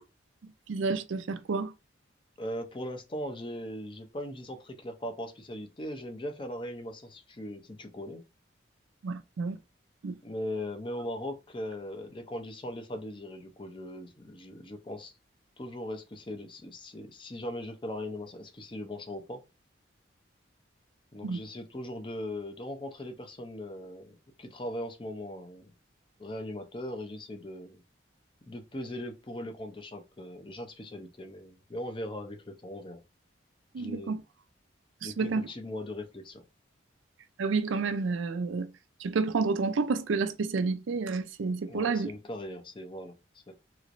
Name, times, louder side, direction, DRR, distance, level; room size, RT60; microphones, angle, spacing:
voice 1, 0.7-1.7 9.0-9.6 10.0-10.2 21.2-21.4 33.7-34.2 35.0-35.5 37.4-38.7 39.0-42.1, right 4 dB, 85° right, 0.4 m, -30 dB
voice 2, 2.4-8.2 10.2-15.1 15.6-19.4 21.1-25.7 26.2-27.8 28.5-33.0 33.8-34.1 35.0-36.4 41.7-43.1 43.5-43.6, left 1 dB, 25° left, 0.5 m, -39 dB
3.0 x 3.0 x 2.5 m
head